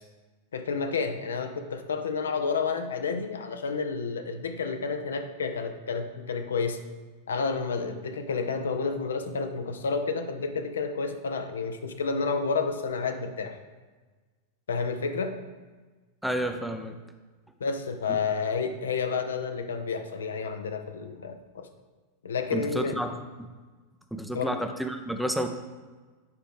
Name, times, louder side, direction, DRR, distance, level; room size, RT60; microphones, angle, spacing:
voice 1, 0.5-6.8 7.3-13.6 14.7-15.3 17.6-21.7 22.2-23.0 24.3-24.6, left 5 dB, 65° left, 7 dB, 0.5 m, -30 dB
voice 2, 16.2-17.0 22.5-23.1 23.4-23.5 24.1-25.5, right 1 dB, ahead, 5 dB, 0.5 m, -30 dB
8.1 x 4.9 x 3.4 m, 1.3 s
figure-of-eight pair, 90°, 0 cm